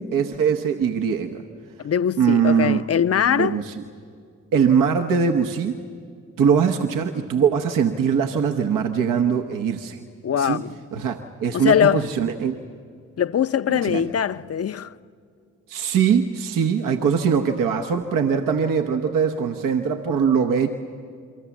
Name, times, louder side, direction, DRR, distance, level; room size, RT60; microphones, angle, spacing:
voice 1, 0.0-1.4 2.2-2.9 3.3-3.8 4.5-5.8 6.4-10.0 10.4-10.6 10.9-12.5 13.8-14.1 15.7-20.7, right 7 dB, 80° right, 1.0 m, -21 dB
voice 2, 1.8-3.6 10.2-10.7 11.5-12.0 13.2-14.9, left 8 dB, 50° left, 0.6 m, -21 dB
27.5 x 23.5 x 7.2 m
supercardioid pair, 45°, 32 cm